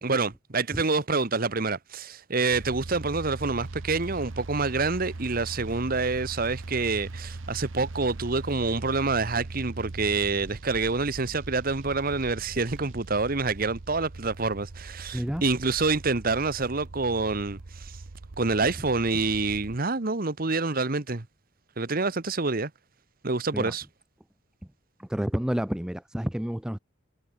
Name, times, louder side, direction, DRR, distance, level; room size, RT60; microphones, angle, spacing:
voice 1, 0.0-17.9 18.4-21.3 21.8-22.7 23.2-23.8, right 3 dB, 45° right, 1.2 m, -27 dB
sound 1, 2.5-19.8, right 2 dB, 75° right, 0.9 m, -40 dB
voice 2, 15.1-15.4 23.5-23.7 25.0-26.8, equal, 5° right, 0.3 m, -29 dB
head